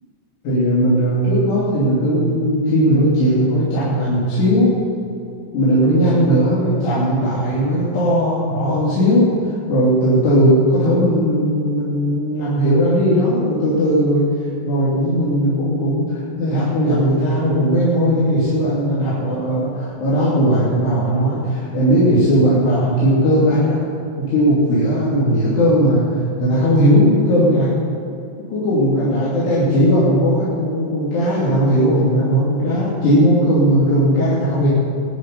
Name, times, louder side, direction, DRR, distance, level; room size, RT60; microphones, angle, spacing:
voice 1, 0.4-4.8 5.5-14.3 14.6-23.8 24.2-26.1 26.4-27.8 28.5-34.7, equal, 80° left, -9 dB, 4.9 m, -17 dB
21.0 x 10.5 x 5.4 m, 2.7 s
omnidirectional pair, 4.8 m